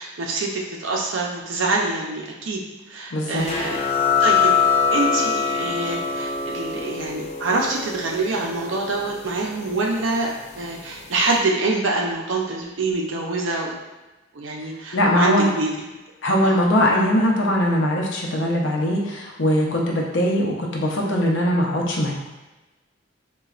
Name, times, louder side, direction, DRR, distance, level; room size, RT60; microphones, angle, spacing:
voice 1, 0.0-2.6 2.9-3.8 4.2-4.5 4.9-13.8 14.3-15.7 16.4-16.6, right 3 dB, 85° right, -1 dB, 0.6 m, -25 dB
voice 2, 3.1-3.5 14.9-15.5 16.2-22.1, equal, 80° left, -2 dB, 0.6 m, -21 dB
sound 1, 3.5-10.7, left 6 dB, 35° left, 0.3 m, -24 dB
4.1 x 2.3 x 2.4 m, 1.1 s
head